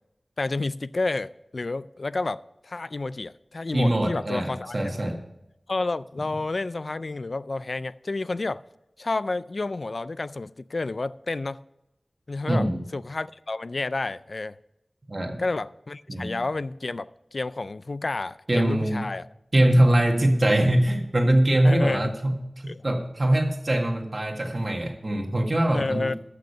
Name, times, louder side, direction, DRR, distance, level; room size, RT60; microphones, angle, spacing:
voice 1, 0.4-4.8 5.7-8.6 9.0-11.6 12.3-12.7 12.9-14.6 15.4-19.3 21.6-22.0 22.7-22.8 25.7-26.1, left 3 dB, 60° left, 0.3 m, -30 dB
voice 2, 3.7-5.2 12.5-12.8 15.1-15.4 16.1-16.3 18.5-19.1 19.5-26.2, right 1 dB, 45° right, 1.7 m, -23 dB
13.0 x 6.6 x 5.5 m
wide cardioid pair, 65°, 0 cm